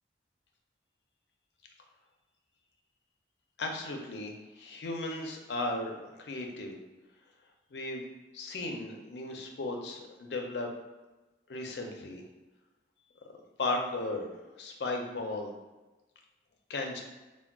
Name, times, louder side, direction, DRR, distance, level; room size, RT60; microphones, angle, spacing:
voice 1, 3.6-6.7 7.7-8.1 8.3-10.7 11.5-12.2 13.6-15.5 16.7-17.0, left 2 dB, 75° left, 2 dB, 0.4 m, -36 dB
3.6 x 2.1 x 2.2 m, 1.1 s
head